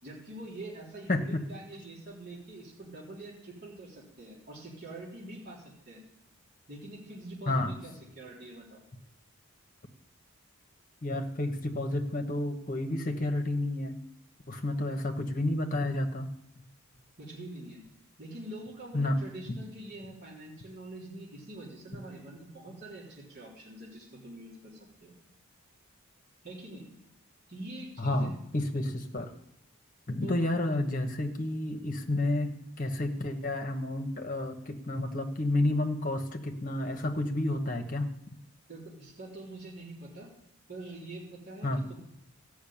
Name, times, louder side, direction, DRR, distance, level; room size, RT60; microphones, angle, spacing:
voice 1, 0.0-6.0 6.7-8.8 17.2-17.8 18.2-25.1 26.4-26.9 27.5-28.3 30.2-30.3 38.7-40.3 40.7-42.0, right 1 dB, 45° right, -5 dB, 3.5 m, -45 dB
voice 2, 1.1-1.4 7.5-7.7 11.0-14.0 14.5-16.3 18.9-19.2 28.0-29.3 30.1-38.1 41.6-41.8, left 1 dB, 35° left, 5 dB, 1.2 m, -30 dB
14.0 x 6.3 x 8.7 m, 0.80 s
head